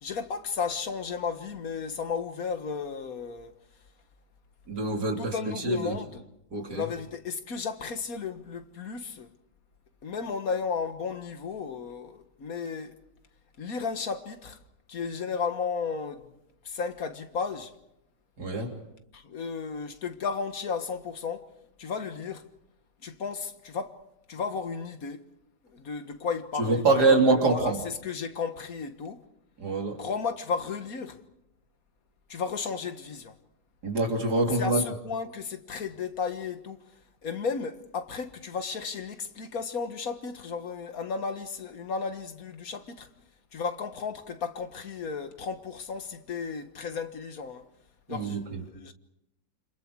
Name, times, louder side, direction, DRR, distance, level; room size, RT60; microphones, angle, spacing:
voice 1, 0.0-3.5 5.2-6.2 6.6-9.3 10.0-13.0 13.6-14.6 14.9-16.3 16.6-17.7 19.1-21.5 21.8-22.5 23.0-24.0 24.3-25.2 25.6-27.0 27.3-29.2 30.0-31.2 32.3-33.4 34.6-43.1 43.5-47.7 48.1-48.9, left 5 dB, 50° left, 1.8 m, -34 dB
voice 2, 4.7-5.3 5.6-6.0 6.5-6.8 18.4-18.7 26.6-27.8 29.6-30.0 33.8-34.8 48.1-48.6, right 3 dB, 60° right, 3.9 m, -25 dB
29.0 x 26.5 x 4.8 m
omnidirectional pair, 2.0 m